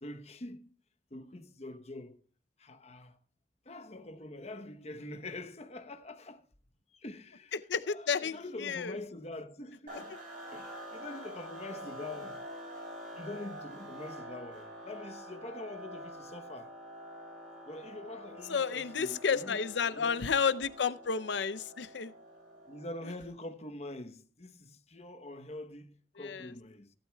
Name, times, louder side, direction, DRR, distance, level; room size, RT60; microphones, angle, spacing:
voice 1, 0.0-0.7 1.1-2.2 2.6-3.2 3.7-6.4 6.9-7.5 7.9-10.1 10.5-12.4 13.1-16.7 17.6-19.6 19.9-20.2 22.7-26.9, left 2 dB, 35° left, 1.0 m, -45 dB
voice 2, 7.5-9.0 9.9-10.0 12.8-12.9 18.5-22.1 26.2-26.5, left 6 dB, 80° left, 0.6 m, -32 dB
sound 1, 9.9-23.3, equal, 50° right, 6.3 m, -47 dB
17.5 x 11.5 x 2.3 m
head